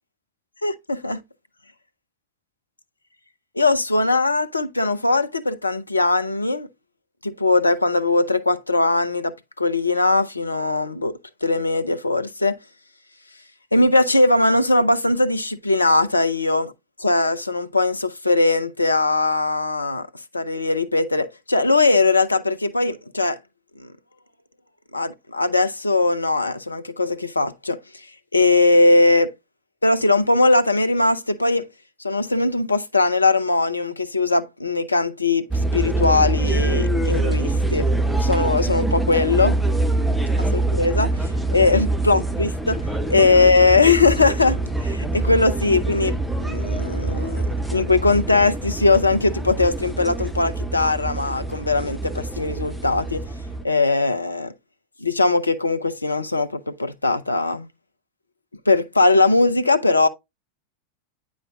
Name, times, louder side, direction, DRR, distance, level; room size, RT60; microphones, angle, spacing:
voice 1, 0.6-1.2 3.6-6.7 7.2-11.1 11.4-12.6 13.7-16.7 17.0-20.1 20.3-23.4 24.9-27.8 28.3-29.3 29.8-31.7 32.0-35.4 35.7-37.9 38.2-39.6 40.4-42.8 43.1-53.2 53.6-54.5 55.0-57.7 58.7-60.1, left 3 dB, 80° left, 0.5 m, -20 dB
sound 1, 35.5-53.7, right 2 dB, ahead, 0.7 m, -24 dB
8.8 x 5.1 x 2.4 m
figure-of-eight pair, 90°, 0 cm